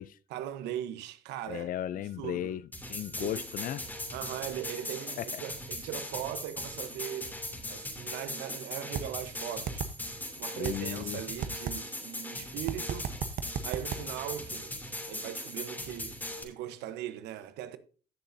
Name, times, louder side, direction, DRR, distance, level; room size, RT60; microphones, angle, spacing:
voice 1, 0.3-1.7 2.2-2.6 3.2-3.4 4.1-7.4 7.7-9.9 10.4-13.1 13.6-14.7 15.1-17.8, right 12 dB, 90° right, 1.1 m, -39 dB
voice 2, 1.5-3.8 5.2-5.4 10.6-11.2, left 12 dB, 55° left, 0.5 m, -36 dB
sound 1, 2.7-16.4, left 1 dB, 10° left, 2.8 m, -39 dB
sound 2, 8.9-9.0 9.7-9.9 10.6-10.8 11.4-11.8 12.7-14.0, right 8 dB, 55° right, 1.0 m, -32 dB
16.5 x 6.6 x 2.7 m
cardioid pair, 110°, 17 cm